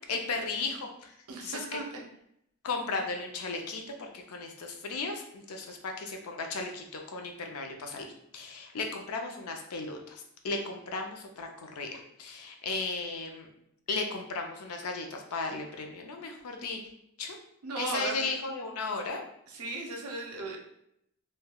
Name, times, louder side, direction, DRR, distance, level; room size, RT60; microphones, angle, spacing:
voice 1, 0.1-1.1 1.4-1.8 2.6-8.1 8.3-13.5 13.9-16.8 17.2-17.4 17.8-19.2, left 3 dB, 85° left, 3 dB, 0.5 m, -35 dB
voice 2, 1.3-1.9 17.6-18.2 19.5-20.6, right 3 dB, 90° right, 0 dB, 0.6 m, -36 dB
3.2 x 2.2 x 2.2 m, 0.75 s
head